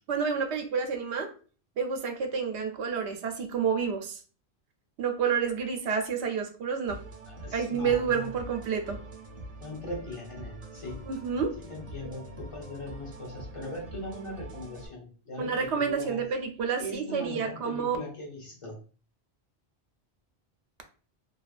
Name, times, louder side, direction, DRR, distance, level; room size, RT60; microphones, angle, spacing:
voice 1, 0.1-1.3 1.8-4.2 5.0-7.0 7.5-9.0 11.1-11.5 15.4-18.0, right 6 dB, 80° right, 5 dB, 0.8 m, -29 dB
sound 1, 6.9-14.9, right 2 dB, 45° right, 0.5 m, -44 dB
voice 2, 7.3-8.3 9.6-11.0 11.7-16.3 16.8-18.7, left 1 dB, 30° left, -2 dB, 0.8 m, -40 dB
2.7 x 2.3 x 2.4 m, 0.39 s
omnidirectional pair, 1.1 m